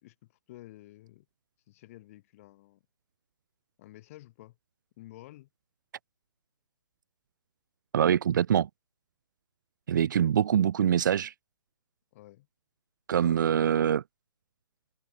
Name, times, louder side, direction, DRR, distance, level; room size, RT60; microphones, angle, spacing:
voice 1, 0.0-1.3 1.7-2.8 3.8-4.6 5.0-5.5 12.1-12.5 13.5-13.6, left 17 dB, 35° left, 3.7 m, -51 dB
voice 2, 7.9-8.7 9.9-11.3 13.1-14.0, right 9 dB, 45° right, 0.9 m, -24 dB
open air
figure-of-eight pair, 135°, 14 cm